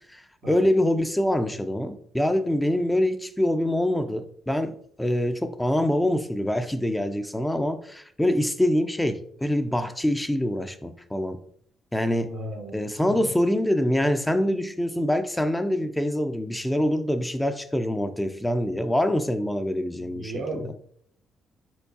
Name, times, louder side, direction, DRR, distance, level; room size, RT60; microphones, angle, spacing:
voice 1, 0.5-11.4 11.9-12.3 12.7-20.6, left 1 dB, 10° left, 0.4 m, -25 dB
voice 2, 12.3-12.8 13.1-13.3 20.0-20.7, right 1 dB, 85° right, 1.0 m, -35 dB
4.5 x 4.4 x 2.7 m
cardioid pair, 90°, 0 cm